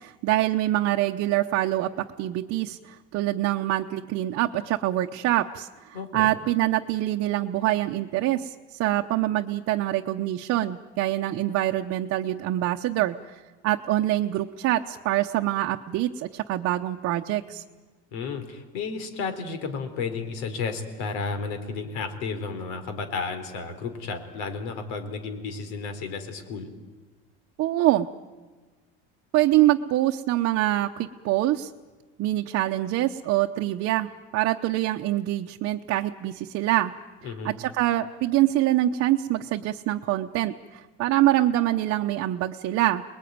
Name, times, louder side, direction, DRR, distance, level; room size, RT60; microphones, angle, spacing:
voice 1, 0.0-8.5 8.8-13.3 13.6-17.6 27.6-28.1 29.3-31.7 32.2-36.9 37.2-43.0, right 14 dB, 45° right, 2 dB, 0.9 m, -25 dB
voice 2, 5.9-6.3 18.1-26.7 37.2-37.6, left 4 dB, 80° left, 8 dB, 4.1 m, -32 dB
28.0 x 21.0 x 9.5 m, 1.3 s
cardioid pair, 145°, 32 cm